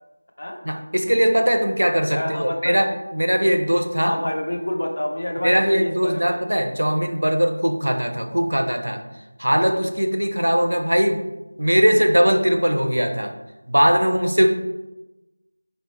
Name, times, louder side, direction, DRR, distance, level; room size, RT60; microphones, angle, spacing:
voice 1, 0.6-4.2 5.4-9.0 9.4-11.3 11.6-13.3 13.7-14.5, equal, 85° right, 6 dB, 0.5 m, -20 dB
voice 2, 2.1-2.8 4.0-6.4, left 1 dB, 55° left, 1 dB, 0.7 m, -27 dB
4.4 x 3.0 x 2.9 m, 1.0 s
figure-of-eight pair, 175°, 0 cm